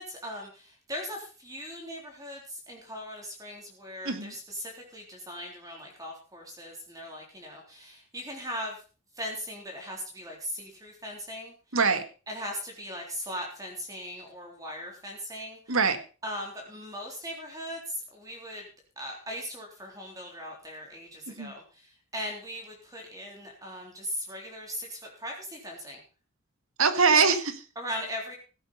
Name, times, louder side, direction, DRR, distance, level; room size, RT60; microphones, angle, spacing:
voice 1, 0.0-8.8 9.2-11.5 12.3-15.7 16.2-18.6 19.0-21.8 22.1-26.0 27.8-28.3, equal, 15° right, 0 dB, 3.6 m, -39 dB
voice 2, 11.7-12.0 15.7-16.0 21.3-21.5 26.8-27.6, right 5 dB, 80° right, 9 dB, 1.8 m, -23 dB
16.0 x 8.7 x 5.5 m, 0.36 s
head